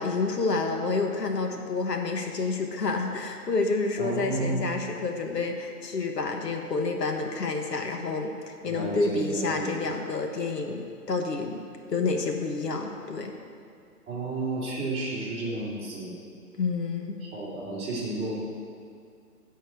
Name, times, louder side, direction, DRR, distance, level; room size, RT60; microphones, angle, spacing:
voice 1, 0.0-8.3 8.6-11.6 11.9-13.3 16.6-17.2, left 3 dB, 85° left, 3 dB, 1.4 m, -29 dB
voice 2, 4.0-4.6 8.6-9.7 14.1-16.1 17.2-18.4, right 2 dB, 15° right, -9 dB, 2.3 m, -32 dB
10.5 x 4.6 x 7.9 m, 2.4 s
hypercardioid pair, 155°, 47 cm